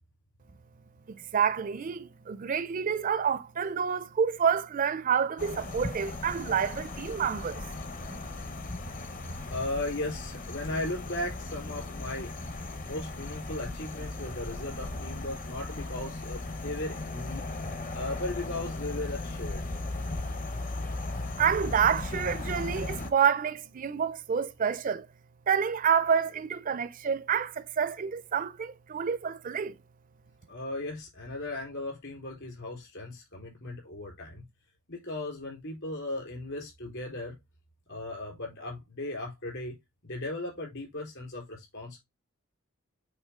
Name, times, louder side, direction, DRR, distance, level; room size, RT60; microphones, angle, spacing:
voice 1, 1.1-7.6 21.4-25.1 25.5-29.7, right 7 dB, 40° right, 0.4 m, -28 dB
sound 1, 5.4-23.1, left 2 dB, 40° left, 0.8 m, -37 dB
voice 2, 9.2-17.5 17.9-19.7 30.5-34.4 34.9-37.4 37.9-39.8 40.0-42.0, left 2 dB, 60° left, 3.8 m, -37 dB
8.2 x 3.8 x 3.6 m
head